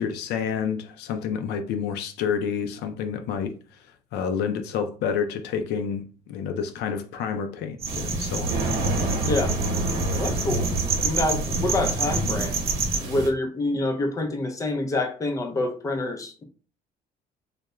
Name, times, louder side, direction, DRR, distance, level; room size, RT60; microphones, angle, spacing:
voice 1, 0.0-3.5 4.1-8.5, left 7 dB, 80° left, 0.4 m, -29 dB
sound 1, 7.8-13.0, right 4 dB, 35° right, 0.5 m, -29 dB
sound 2, 7.8-13.3, right 1 dB, 75° right, 0.9 m, -28 dB
voice 2, 9.2-9.6 10.2-10.7 11.0-12.6 12.9-16.4, left 2 dB, 20° left, 0.4 m, -27 dB
2.3 x 2.1 x 2.9 m
cardioid pair, 110°, 17 cm